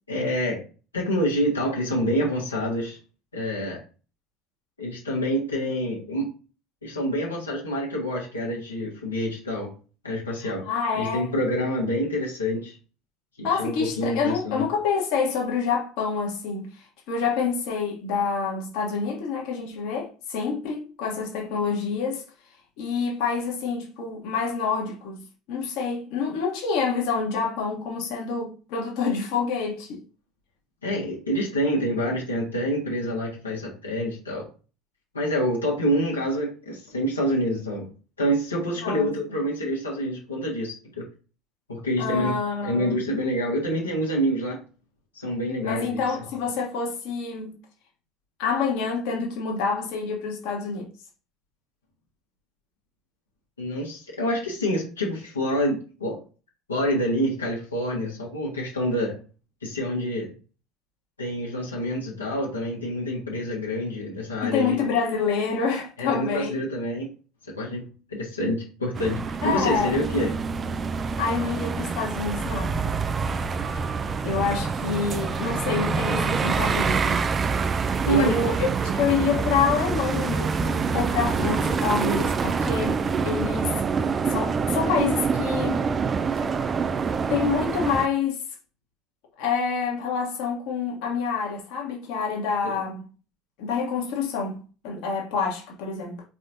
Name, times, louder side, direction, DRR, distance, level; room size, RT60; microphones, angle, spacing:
voice 1, 0.1-0.6 0.9-3.0 3.3-3.8 4.8-6.3 6.8-9.7 10.0-10.7 10.9-12.8 13.4-14.6 30.8-34.5 35.1-37.9 38.2-41.0 41.7-42.3 42.6-44.6 45.1-46.0 53.6-56.2 56.7-59.1 59.6-60.3 61.2-64.7 66.0-67.1 67.5-67.8 68.1-70.3 78.1-78.4, equal, 90° left, 1.2 m, -27 dB
voice 2, 10.4-11.3 13.4-22.2 22.8-30.0 38.8-39.1 42.0-43.0 45.6-47.6 48.4-50.9 64.4-66.6 69.4-70.0 71.2-72.7 73.7-73.8 74.2-77.2 78.1-78.7 78.9-83.8 84.3-85.8 87.3-88.4 89.4-93.0 93.6-96.2, left 5 dB, 60° left, 1.1 m, -27 dB
sound 1, 68.9-88.1, right 5 dB, 30° right, 0.4 m, -26 dB
4.2 x 3.4 x 2.6 m
hypercardioid pair, 65°, 0 cm